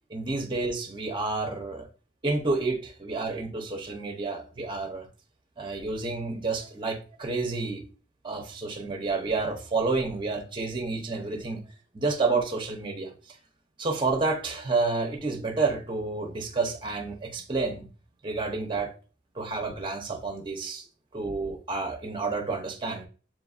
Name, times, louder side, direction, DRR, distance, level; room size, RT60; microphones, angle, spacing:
voice 1, 0.1-1.9 2.2-5.1 5.6-7.8 8.2-11.6 11.9-13.1 13.8-17.9 18.2-18.9 19.4-20.9 21.1-23.1, right 3 dB, 30° right, 3 dB, 0.6 m, -29 dB
7.4 x 2.5 x 2.3 m, 0.37 s
head